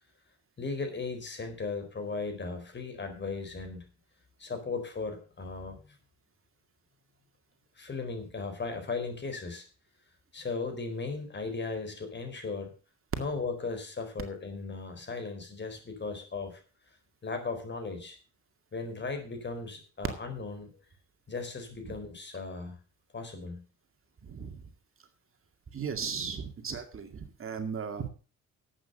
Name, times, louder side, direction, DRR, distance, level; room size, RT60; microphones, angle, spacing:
voice 1, 0.6-3.9 4.4-5.9 7.8-9.6 10.3-12.7 13.2-16.6 17.2-18.2 18.7-20.7 21.3-22.8 23.1-23.6, left 4 dB, 35° left, 6 dB, 4.2 m, -37 dB
voice 2, 24.2-24.6 25.7-28.1, right 6 dB, 45° right, 6 dB, 2.2 m, -36 dB
11.5 x 8.4 x 6.8 m, 0.37 s
cardioid pair, 90°, 30 cm